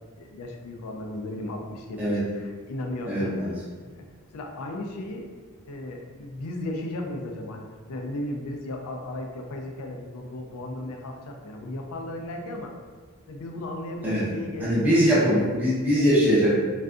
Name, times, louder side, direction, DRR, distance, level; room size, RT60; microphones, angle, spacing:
voice 1, 0.2-3.4 4.3-5.3 5.7-12.7 13.3-15.4, left 1 dB, 70° left, 3 dB, 0.4 m, -35 dB
voice 2, 3.0-3.5 14.0-14.2 14.6-16.5, equal, 5° right, -11 dB, 0.7 m, -21 dB
2.6 x 2.3 x 2.3 m, 1.5 s
head